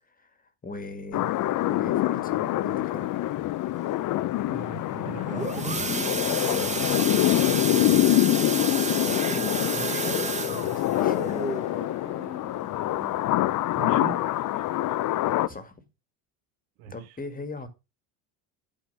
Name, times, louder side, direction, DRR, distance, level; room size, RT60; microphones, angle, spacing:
voice 1, 0.0-1.4 1.6-3.1 6.5-7.0 7.4-8.4 9.0-11.5 13.7-13.9 15.5-15.8 16.9-17.7, left 2 dB, 20° left, 1.7 m, -40 dB
sound 1, 1.1-15.5, left 15 dB, 45° left, 0.6 m, -25 dB
voice 2, 4.5-5.8 13.7-14.2 16.8-17.2, right 9 dB, 80° right, 1.7 m, -39 dB
sound 2, 5.1-13.7 14.2-14.4 14.7-14.8 15.3-15.4, right 3 dB, 15° right, 1.5 m, -31 dB
9.1 x 4.9 x 5.3 m
supercardioid pair, 95°, 43 cm